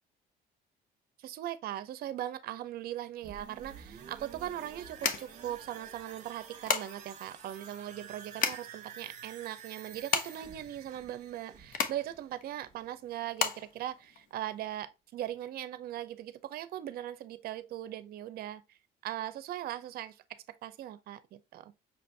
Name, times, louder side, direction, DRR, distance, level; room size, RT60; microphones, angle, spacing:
voice 1, 1.2-18.8 19.0-21.7, right 12 dB, 65° right, 0.6 m, -40 dB
sound 1, 3.2-12.9 13.3-13.4, right 7 dB, 45° right, 1.0 m, -50 dB
sound 2, 3.6-14.8, left 6 dB, 55° left, 0.8 m, -36 dB
5.8 x 2.6 x 3.2 m
cardioid pair, 110°, 17 cm